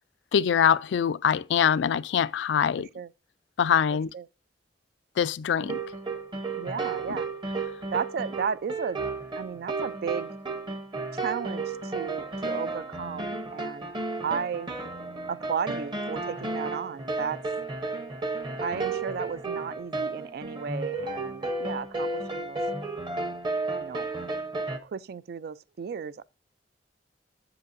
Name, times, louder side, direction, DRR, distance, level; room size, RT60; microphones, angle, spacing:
voice 1, 0.3-2.9 3.6-4.1 5.2-5.8 7.1-7.2, left 7 dB, 75° left, 0.3 m, -24 dB
voice 2, 2.8-3.1 3.9-4.3 6.6-7.3 7.9-9.0 9.4-10.3 11.1-14.0 14.2-14.7 15.3-17.4 18.6-22.6 23.8-24.1 24.8-26.2, right 6 dB, 60° right, 0.3 m, -34 dB
sound 1, 5.6-24.8, right 3 dB, 25° right, 0.8 m, -33 dB
8.0 x 7.9 x 2.5 m
head